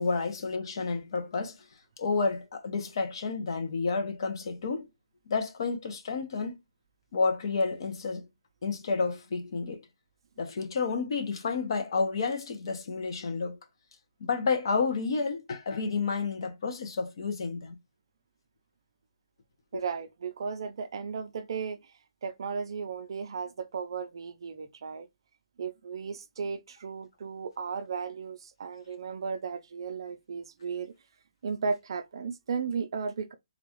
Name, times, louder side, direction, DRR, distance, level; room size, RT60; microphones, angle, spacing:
voice 1, 0.0-1.5 2.0-4.9 5.3-6.6 7.1-8.3 8.6-9.9 10.4-13.6 14.2-17.8 19.7-19.8, left 4 dB, 50° left, 0.9 m, -30 dB
voice 2, 19.7-21.9 22.2-25.1 25.6-30.9 31.4-33.3, right 5 dB, 50° right, 0.5 m, -35 dB
3.8 x 2.4 x 3.0 m
hypercardioid pair, 170°, 3 cm